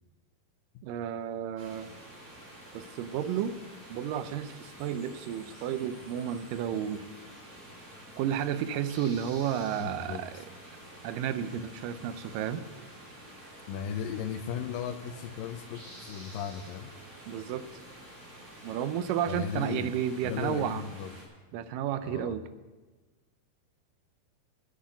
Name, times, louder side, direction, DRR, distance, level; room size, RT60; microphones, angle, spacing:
voice 1, 0.8-1.9 2.7-3.6 3.9-7.0 8.2-10.3 11.0-12.6 17.3-17.7 18.6-20.8 21.5-22.4, right 9 dB, 80° right, 12 dB, 2.3 m, -32 dB
sound 1, 1.6-21.2, right 1 dB, 15° right, 4.3 m, -49 dB
voice 2, 9.8-10.4 13.7-16.9 19.3-19.9 20.2-21.1 22.0-22.4, left 8 dB, 85° left, 10 dB, 2.4 m, -36 dB
10.0 x 8.7 x 9.3 m, 1.3 s
omnidirectional pair, 3.9 m